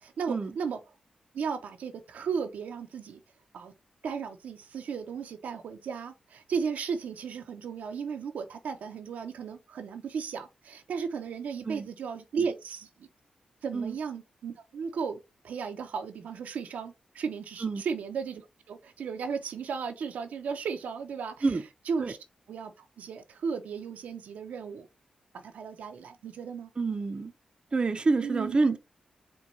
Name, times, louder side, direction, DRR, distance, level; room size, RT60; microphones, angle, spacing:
voice 1, 0.0-0.8 1.3-3.2 3.5-3.7 4.0-13.1 13.6-21.6 21.9-22.2 22.5-24.9 25.3-26.7 28.2-28.6, right 6 dB, 85° right, 0.6 m, -35 dB
voice 2, 26.8-27.3 27.7-28.8, right 3 dB, 40° right, 0.5 m, -27 dB
4.5 x 2.2 x 3.9 m
cardioid pair, 60°, 3 cm